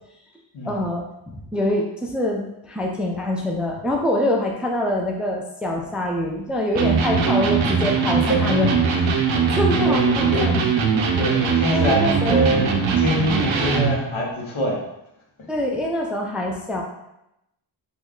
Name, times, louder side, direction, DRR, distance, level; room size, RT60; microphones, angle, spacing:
voice 1, 0.6-1.1 1.3-9.1 9.5-10.5 11.6-12.5 15.5-16.8, left 1 dB, 5° right, 0 dB, 0.3 m, -25 dB
Electric guitar, 6.8-14.1, right 5 dB, 80° right, 0.6 m, -20 dB
voice 2, 9.8-10.6 11.2-12.7 13.0-14.8, equal, 85° left, -2 dB, 0.9 m, -24 dB
3.1 x 2.3 x 3.6 m, 0.85 s
wide cardioid pair, 105°, 46 cm